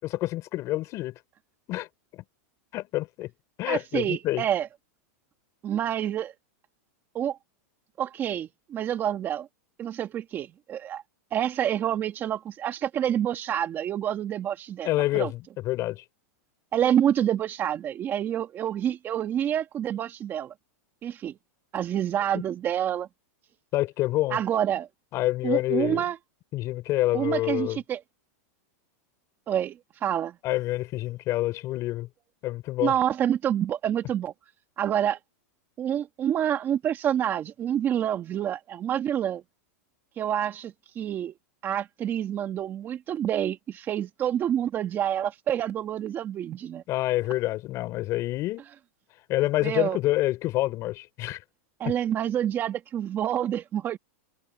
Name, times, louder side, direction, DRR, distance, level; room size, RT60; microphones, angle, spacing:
voice 1, 0.0-1.2 1.7-1.9 2.1-2.2 2.7-3.3 3.6-4.4 14.8-16.0 22.3-22.4 23.7-24.4 25.1-26.0 26.5-27.8 30.4-32.1 32.4-32.9 46.9-48.6 49.3-51.4, left 16 dB, 35° left, 5.2 m, -27 dB
voice 2, 3.7-4.7 5.6-6.3 7.1-7.4 8.0-9.5 9.8-11.0 11.3-14.9 15.1-15.3 16.7-20.5 21.0-21.3 21.7-23.1 24.3-24.9 25.4-26.2 27.1-28.0 29.5-30.4 32.8-34.3 34.8-35.2 35.8-39.4 40.2-41.3 41.6-46.8 49.6-50.0 51.8-54.0, right 10 dB, 25° right, 1.8 m, -27 dB
supercardioid pair, 145°, 9 cm